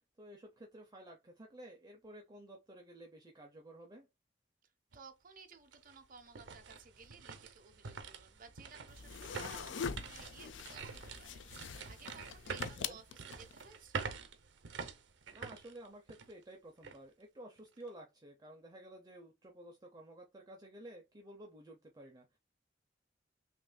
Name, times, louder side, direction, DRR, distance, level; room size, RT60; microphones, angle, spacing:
voice 1, 0.2-4.1 12.8-13.0 15.3-22.4, right 1 dB, 20° right, 0.7 m, -53 dB
voice 2, 4.9-14.1, right 5 dB, 50° right, 0.9 m, -58 dB
sound 1, 4.9-5.0 5.5-16.4 16.8-17.0 17.6-17.9, right 5 dB, 75° right, 0.7 m, -46 dB
sound 2, 8.9-13.7, left 6 dB, 80° left, 0.5 m, -44 dB
6.0 x 2.6 x 2.2 m
head